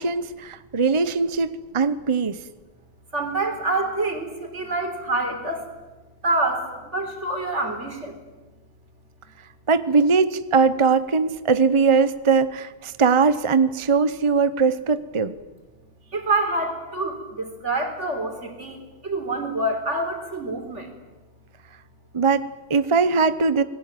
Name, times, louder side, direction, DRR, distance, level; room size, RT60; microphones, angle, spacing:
voice 1, 0.0-2.4 9.7-15.3 22.1-23.6, right 5 dB, 30° right, 13 dB, 0.9 m, -20 dB
voice 2, 3.1-5.7 6.2-6.7 6.9-8.2 16.1-18.8 19.0-20.9, right 2 dB, 85° right, 5 dB, 4.4 m, -26 dB
28.0 x 21.0 x 9.1 m, 1.2 s
omnidirectional pair, 1.2 m